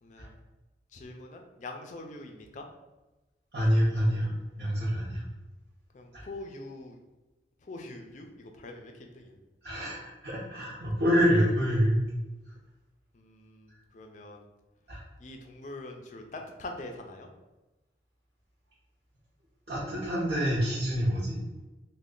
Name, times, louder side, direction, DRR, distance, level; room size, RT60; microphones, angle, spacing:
voice 1, 0.0-0.3 0.9-2.6 5.9-7.0 7.6-9.3 13.1-14.4 15.2-17.3, left 2 dB, 40° left, 3 dB, 0.4 m, -44 dB
voice 2, 3.5-4.3 4.6-5.2 6.1-6.2 9.6-12.0 14.9-15.0 19.7-21.4, equal, 60° right, -9 dB, 0.8 m, -26 dB
3.2 x 2.2 x 3.7 m, 1.1 s
head